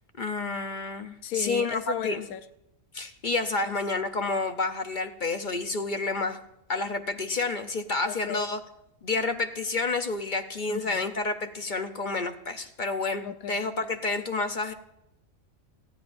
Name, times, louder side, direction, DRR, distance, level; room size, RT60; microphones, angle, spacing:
voice 1, 0.2-2.2 2.9-6.4 6.7-8.6 9.0-14.7, left 3 dB, 45° left, 7 dB, 0.7 m, -29 dB
voice 2, 1.2-2.5 3.6-3.7 8.1-8.5 10.7-11.1 13.2-13.9, left 10 dB, 80° left, 11 dB, 1.2 m, -36 dB
30.0 x 10.5 x 2.6 m, 0.84 s
omnidirectional pair, 1.5 m